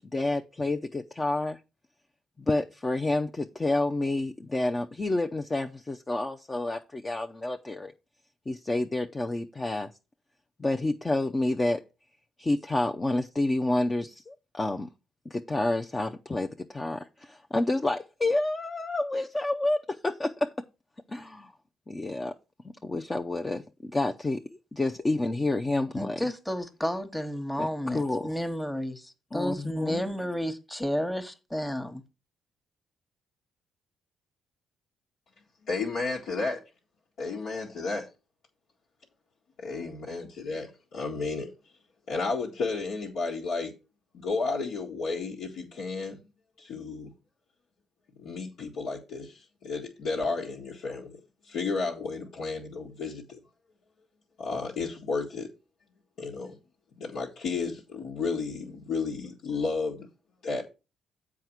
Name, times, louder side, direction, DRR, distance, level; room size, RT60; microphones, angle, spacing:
voice 1, 0.1-1.6 2.4-7.9 8.5-9.9 10.6-11.8 12.4-14.9 15.3-20.5 21.1-21.5 21.9-22.3 22.6-26.2 27.6-28.3 29.3-30.0, left 2 dB, 25° left, 0.6 m, -29 dB
voice 2, 25.9-32.0, equal, 5° left, 1.3 m, -32 dB
voice 3, 35.7-36.6 37.2-38.1 39.6-41.5 42.1-43.7 44.1-46.2 46.6-47.1 48.2-51.2 51.4-53.4 54.4-55.5 56.2-56.6 57.0-60.1 60.4-60.6, left 4 dB, 75° left, 1.9 m, -32 dB
7.8 x 4.8 x 5.9 m
cardioid pair, 80°, 0 cm